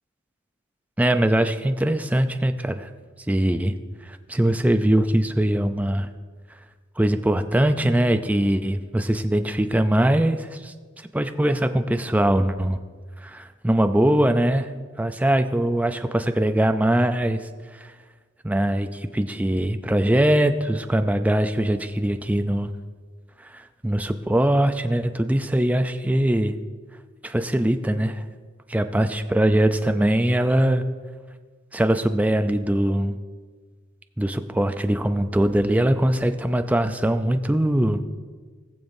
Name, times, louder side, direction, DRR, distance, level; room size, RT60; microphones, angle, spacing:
voice 1, 1.0-2.9 3.3-3.7 4.0-6.1 7.0-10.7 11.1-12.8 13.2-14.7 15.0-17.4 17.8-17.9 18.4-22.7 23.5-26.5 27.2-28.2 28.7-30.8 31.7-33.2 34.2-38.0, right 1 dB, 5° right, 8 dB, 0.4 m, -22 dB
19.5 x 7.1 x 2.6 m, 1.5 s
head